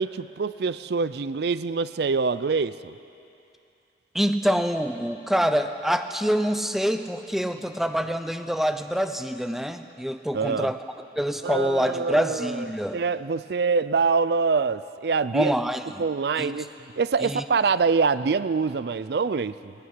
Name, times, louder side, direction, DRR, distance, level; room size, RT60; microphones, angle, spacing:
voice 1, 0.0-2.9 10.3-10.7 11.4-15.5 16.0-16.7 17.0-19.7, right 5 dB, 65° right, 15 dB, 0.4 m, -25 dB
voice 2, 4.1-10.8 11.2-13.0 15.3-16.0 16.4-16.7 17.2-17.4, equal, ahead, 7 dB, 0.7 m, -26 dB
19.0 x 17.5 x 9.6 m, 2.7 s
head